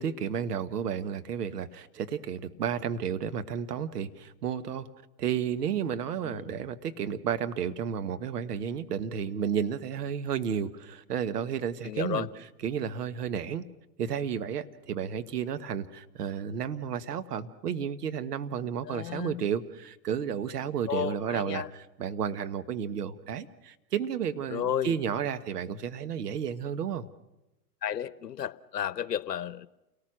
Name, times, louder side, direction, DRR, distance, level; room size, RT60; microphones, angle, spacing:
voice 1, 0.0-4.9 5.2-13.7 14.0-27.1, right 8 dB, 70° right, 10 dB, 1.5 m, -32 dB
voice 2, 11.8-12.3 18.9-19.4 20.9-21.7 24.5-24.9 27.8-29.7, left 9 dB, 80° left, 17 dB, 1.0 m, -32 dB
29.0 x 18.5 x 6.3 m, 0.95 s
hypercardioid pair, 115°, 48 cm